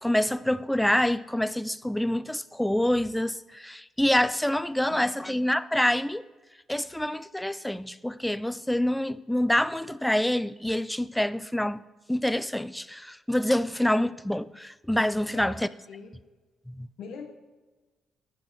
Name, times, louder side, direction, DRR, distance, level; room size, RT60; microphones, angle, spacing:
voice 1, 0.0-6.2 6.7-11.8 12.1-15.7 16.7-16.9, left 1 dB, 5° left, 0.3 m, -26 dB
voice 2, 4.9-5.3 15.3-16.2 17.0-17.3, left 5 dB, 80° left, 1.3 m, -42 dB
8.7 x 5.2 x 5.2 m
cardioid pair, 90°, 0 cm